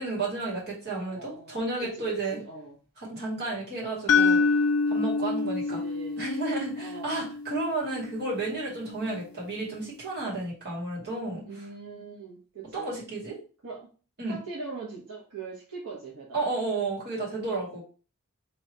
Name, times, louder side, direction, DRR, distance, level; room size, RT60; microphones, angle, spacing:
voice 1, 0.0-2.4 3.1-4.4 4.9-5.8 6.2-11.4 12.7-13.4 14.2-14.4 16.3-17.8, right 2 dB, 50° right, -5 dB, 2.1 m, -32 dB
voice 2, 0.9-2.8 5.4-6.3 6.8-7.2 11.5-12.9 13.6-13.9 14.3-16.5, right 4 dB, 80° right, -4 dB, 1.3 m, -42 dB
sound 1, 4.1-8.1, left 4 dB, 80° left, 0.4 m, -26 dB
3.2 x 3.1 x 4.3 m, 0.36 s
head